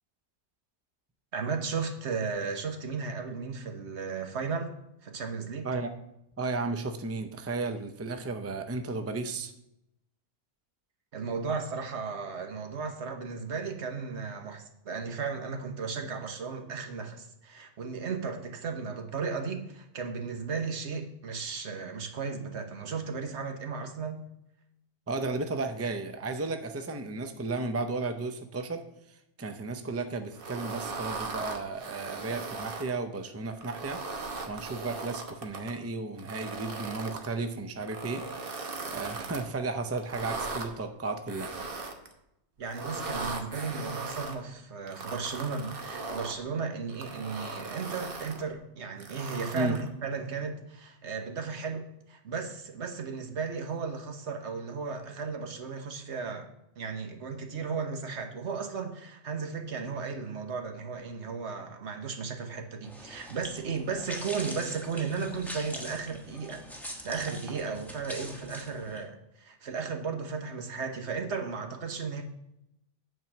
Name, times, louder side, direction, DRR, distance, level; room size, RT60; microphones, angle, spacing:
voice 1, 1.3-4.7 5.0-5.7 11.1-24.2 42.6-56.5 56.8-66.6 67.0-72.2, right 5 dB, 85° right, 4 dB, 1.4 m, -35 dB
voice 2, 6.4-9.5 25.1-28.8 29.4-34.0 34.5-38.2 38.9-41.5 49.5-49.8, right 3 dB, 20° right, 7 dB, 0.5 m, -34 dB
sound 1, 30.4-32.9 33.5-35.7 36.2-37.3 37.8-39.4 40.0-40.7 41.3-42.1 42.7-44.4 44.9-46.4 46.9-48.4 49.0-49.9, right 3 dB, 55° right, 1.2 m, -38 dB
sound 2, 62.8-69.0, equal, ahead, 1.0 m, -43 dB
8.9 x 4.5 x 7.1 m, 0.83 s
omnidirectional pair, 1.1 m